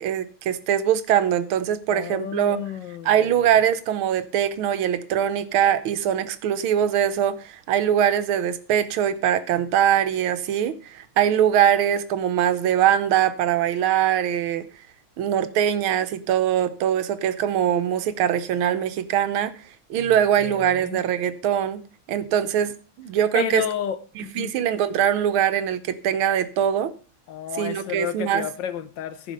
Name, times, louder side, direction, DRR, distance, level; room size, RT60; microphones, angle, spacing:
voice 1, 0.0-2.6 3.0-14.7 15.2-19.6 19.9-21.8 22.1-23.6 24.2-26.9 27.6-28.5, right 10 dB, 80° right, 1.7 m, -22 dB
voice 2, 1.9-3.2 20.0-21.0 23.3-24.5 27.3-29.3, left 9 dB, 70° left, 1.3 m, -32 dB
14.5 x 5.3 x 5.3 m
omnidirectional pair, 2.3 m